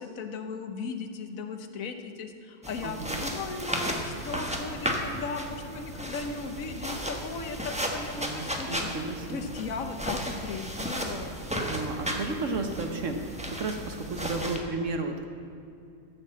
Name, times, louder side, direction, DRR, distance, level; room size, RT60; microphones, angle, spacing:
voice 1, 0.0-8.9 9.3-11.4, left 4 dB, 55° left, 7 dB, 1.1 m, -37 dB
sound 1, 2.6-14.6, equal, 5° right, 0.8 m, -34 dB
voice 2, 2.8-3.2 8.2-9.5 11.6-15.3, right 3 dB, 55° right, 5 dB, 0.9 m, -33 dB
14.5 x 6.5 x 7.4 m, 2.5 s
omnidirectional pair, 2.1 m